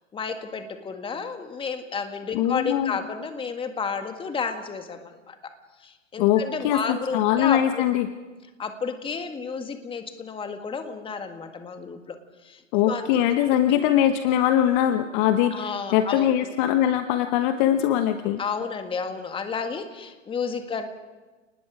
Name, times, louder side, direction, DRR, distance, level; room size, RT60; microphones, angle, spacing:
voice 1, 0.1-5.4 5.8-7.8 8.6-12.2 12.4-13.4 13.7-13.8 15.5-16.3 18.4-20.9, left 5 dB, 15° left, 7 dB, 1.8 m, -31 dB
voice 2, 2.3-3.0 6.2-8.1 12.7-18.4, left 11 dB, 35° left, 9 dB, 1.1 m, -22 dB
29.5 x 20.0 x 4.9 m, 1.2 s
hypercardioid pair, 115°, 39 cm